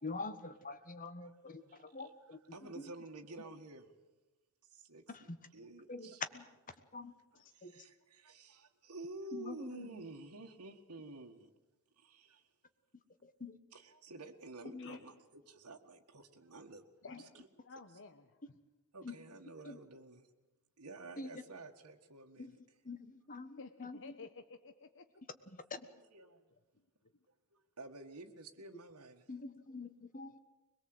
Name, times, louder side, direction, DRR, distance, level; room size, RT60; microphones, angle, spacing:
voice 1, 0.0-2.4 2.8-2.9 3.4-3.5 5.1-5.4 5.9-6.4 6.9-7.1 7.6-7.8 9.3-10.1 13.2-13.5 14.7-15.0 19.0-19.1 19.7-19.8 21.2-21.3 22.4-22.5 22.8-24.1 25.5-25.8 29.3-30.4, left 3 dB, 40° left, 10 dB, 1.4 m, -45 dB
voice 2, 1.7-2.1 2.5-3.9 4.7-6.2 7.5-11.5 12.0-12.4 13.7-16.8 17.3-17.5 18.9-20.2 20.8-22.5 26.1-26.5 27.8-29.2, right 2 dB, 85° right, 2 dB, 1.8 m, -51 dB
voice 3, 17.6-18.6 23.6-25.1, left 4 dB, 60° left, 7 dB, 1.0 m, -52 dB
22.0 x 22.0 x 8.0 m, 1.1 s
head